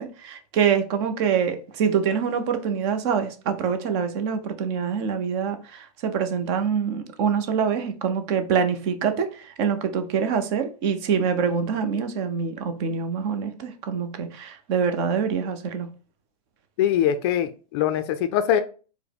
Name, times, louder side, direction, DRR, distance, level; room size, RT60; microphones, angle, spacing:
voice 1, 0.0-15.9, right 6 dB, 40° right, 0.6 m, -25 dB
voice 2, 16.8-18.6, left 10 dB, 40° left, 0.4 m, -22 dB
4.6 x 2.0 x 3.4 m
hypercardioid pair, 130°, 21 cm